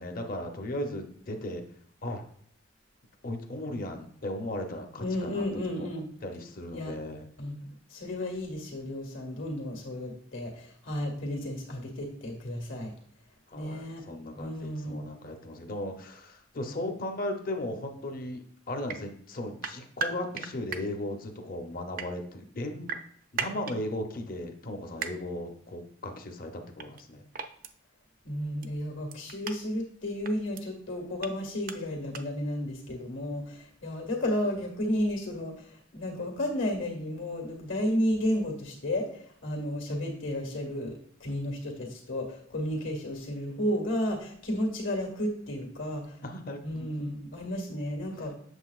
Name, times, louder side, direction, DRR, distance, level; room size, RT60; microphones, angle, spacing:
voice 1, 0.0-1.6 2.0-2.2 3.2-5.4 6.2-7.3 13.5-23.0 23.3-27.2 46.2-46.9, left 1 dB, 45° left, 4 dB, 0.8 m, -36 dB
voice 2, 5.0-6.1 6.7-6.9 7.4-12.9 13.5-14.0 14.3-15.0 28.2-35.7 35.9-46.2 46.6-48.3, left 1 dB, 75° left, 1 dB, 1.9 m, -32 dB
sound 1, 18.9-19.0 19.6-20.8 21.7-22.1 22.9-23.8 25.0-25.1 26.8-27.0 27.3-27.7 28.6-28.7 29.1-29.6 30.2-30.6 31.2-31.3 31.7-31.8 32.1-32.2, right 6 dB, 45° right, 0.5 m, -35 dB
8.0 x 7.1 x 2.4 m, 0.63 s
head